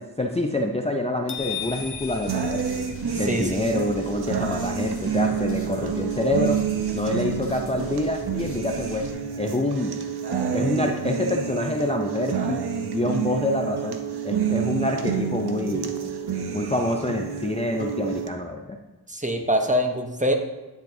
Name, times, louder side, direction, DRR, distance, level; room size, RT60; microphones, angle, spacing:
voice 1, 0.0-2.6 3.1-6.6 6.9-9.1 9.4-10.0 10.5-14.0 14.2-15.9 16.5-18.8, left 2 dB, 15° left, 2 dB, 0.4 m, -26 dB
sound 1, 1.3-3.5, left 9 dB, 75° left, 0.8 m, -36 dB
sound 2, 1.4-9.1, left 1 dB, 35° left, 1.4 m, -43 dB
sound 3, 2.3-18.3, right 7 dB, 75° right, 0.7 m, -28 dB
voice 2, 3.3-3.6 19.1-20.3, equal, 20° right, 4 dB, 0.8 m, -24 dB
9.3 x 7.2 x 2.7 m, 1.1 s
wide cardioid pair, 65°, 40 cm